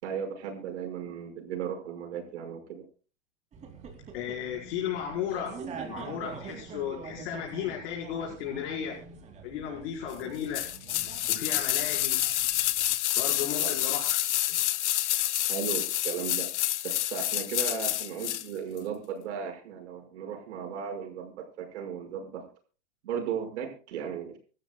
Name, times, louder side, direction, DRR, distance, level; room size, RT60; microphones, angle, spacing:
voice 1, 0.0-2.8 13.4-13.7 15.5-22.5 23.0-24.4, right 7 dB, 75° right, 5 dB, 5.7 m, -36 dB
sound 1, 3.5-13.0, right 5 dB, 20° right, 2.8 m, -45 dB
voice 2, 4.1-9.0 9.4-10.7 11.3-12.2 13.2-14.1 14.5-14.6, left 9 dB, 60° left, -1 dB, 4.9 m, -35 dB
sound 2, 10.5-18.5 18.8-18.9, left 14 dB, 75° left, 1.2 m, -28 dB
26.5 x 13.5 x 2.3 m, 0.37 s
supercardioid pair, 165°, 35 cm